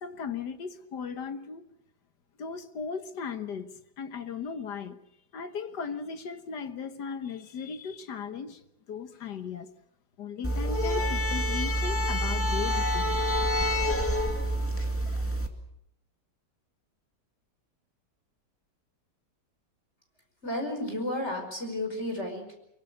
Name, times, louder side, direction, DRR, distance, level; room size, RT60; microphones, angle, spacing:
voice 1, 0.0-1.6 2.4-3.7 4.0-5.0 5.3-8.6 8.9-9.7 10.2-13.2 15.0-15.2, left 6 dB, 75° left, 1.8 m, -37 dB
sound 1, 10.4-15.5, equal, 5° left, 2.0 m, -27 dB
voice 2, 20.4-22.5, left 1 dB, 40° left, 5.5 m, -32 dB
24.0 x 23.5 x 6.8 m
omnidirectional pair, 1.9 m